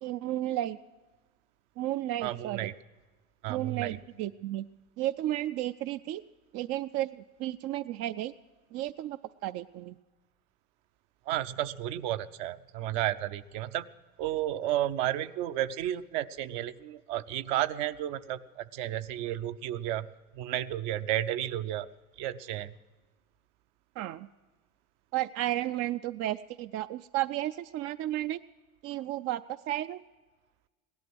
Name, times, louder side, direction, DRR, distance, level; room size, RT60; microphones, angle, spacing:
voice 1, 0.0-0.8 1.8-2.7 3.5-4.7 5.0-6.2 6.5-8.3 8.7-9.9 24.0-24.3 25.1-28.4 28.8-30.0, right 14 dB, 40° right, 12 dB, 0.4 m, -33 dB
voice 2, 2.2-2.7 3.4-4.0 11.3-13.9 14.2-21.9 22.2-22.7, right 13 dB, 55° right, 11 dB, 0.8 m, -32 dB
17.5 x 11.5 x 6.1 m, 1.3 s
hypercardioid pair, 80°, 42 cm